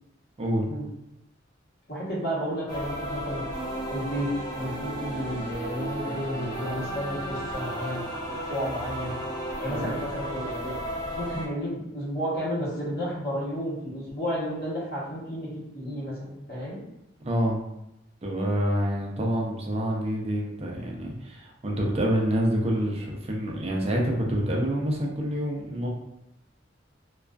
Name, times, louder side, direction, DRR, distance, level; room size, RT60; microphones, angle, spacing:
voice 1, 1.9-3.4 3.9-4.3 4.5-9.1 9.6-10.7 11.1-16.8, equal, 55° left, -6 dB, 0.9 m, -32 dB
sound 1, 2.7-11.5, equal, 20° left, 0.6 m, -34 dB
voice 2, 17.3-17.6 18.2-25.9, equal, 35° right, -1 dB, 0.4 m, -27 dB
2.4 x 2.2 x 2.3 m, 0.85 s
head